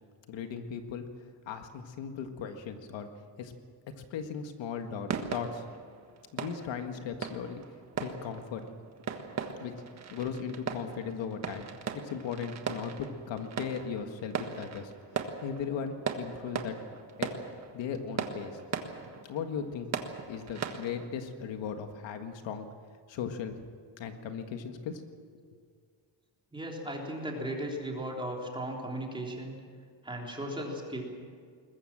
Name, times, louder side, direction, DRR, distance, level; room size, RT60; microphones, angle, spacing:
voice 1, 0.3-1.1 1.5-3.1 3.4-3.5 4.0-5.6 6.3-7.6 8.0-8.6 9.6-9.7 10.1-11.7 11.9-16.8 17.2-17.3 17.7-18.6 19.3-19.9 20.3-22.7 23.1-23.6 24.0-25.0 25.3-25.4, left 7 dB, 75° left, 6 dB, 1.8 m, -37 dB
sound 1, 5.1-21.1, right 6 dB, 35° right, 1.5 m, -39 dB
voice 2, 26.5-29.5 30.0-31.0, right 1 dB, 10° right, -1 dB, 3.4 m, -36 dB
21.5 x 21.0 x 7.5 m, 2.1 s
cardioid pair, 175°, 45 cm